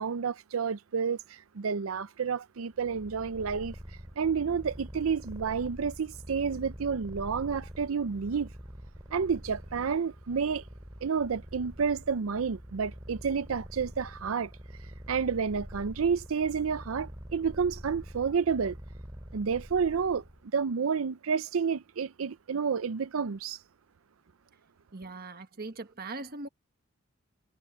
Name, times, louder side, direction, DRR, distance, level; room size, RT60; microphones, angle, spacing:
voice 1, 0.0-8.5 9.1-10.6 11.0-14.5 15.1-18.8 19.3-20.2 20.5-23.6, right 6 dB, 85° right, 0.5 m, -30 dB
Purr, 2.8-20.5, equal, 15° right, 3.1 m, -46 dB
voice 2, 24.9-26.5, right 3 dB, 45° right, 1.4 m, -40 dB
head